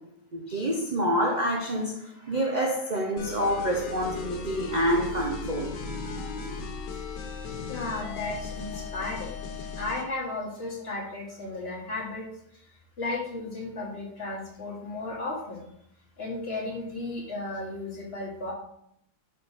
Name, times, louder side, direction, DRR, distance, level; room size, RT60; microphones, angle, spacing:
voice 1, 0.3-5.7, equal, 40° right, 0 dB, 0.6 m, -27 dB
sound 1, 3.2-10.1, left 4 dB, 85° left, 1.5 m, -37 dB
voice 2, 7.7-9.4 9.8-12.2 12.5-15.7 16.2-18.5, left 2 dB, 40° left, -3 dB, 1.8 m, -34 dB
5.0 x 4.5 x 5.7 m, 0.74 s
omnidirectional pair, 1.8 m